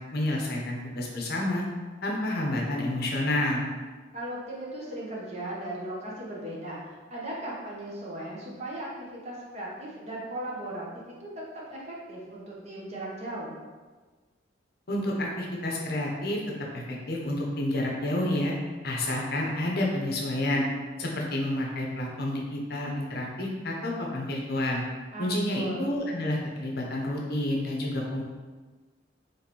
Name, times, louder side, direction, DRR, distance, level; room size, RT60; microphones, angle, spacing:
voice 1, 0.0-1.6 2.0-3.7 14.9-16.4 16.9-18.5 18.8-20.6 21.0-24.8 25.2-28.2, left 1 dB, 55° left, -1 dB, 0.7 m, -29 dB
voice 2, 4.1-10.9 11.2-11.3 11.5-13.6 25.1-25.9, right 1 dB, 35° right, -5 dB, 0.9 m, -37 dB
3.2 x 3.0 x 4.2 m, 1.4 s
head